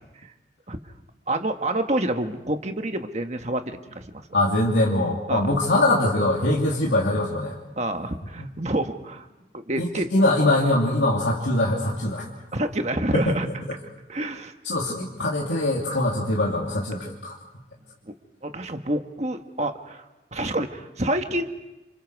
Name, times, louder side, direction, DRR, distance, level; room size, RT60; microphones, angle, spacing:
voice 1, 1.3-4.2 5.3-5.5 7.8-9.2 9.5-10.1 12.5-13.5 14.1-14.5 16.7-17.0 18.1-18.2 18.4-20.0 20.3-21.4, right 1 dB, 40° right, 6 dB, 1.4 m, -28 dB
voice 2, 4.3-7.5 8.4-8.5 9.8-12.3 13.1-13.3 14.6-17.3, left 1 dB, 75° left, -3 dB, 2.8 m, -22 dB
30.0 x 27.5 x 4.8 m, 0.99 s
head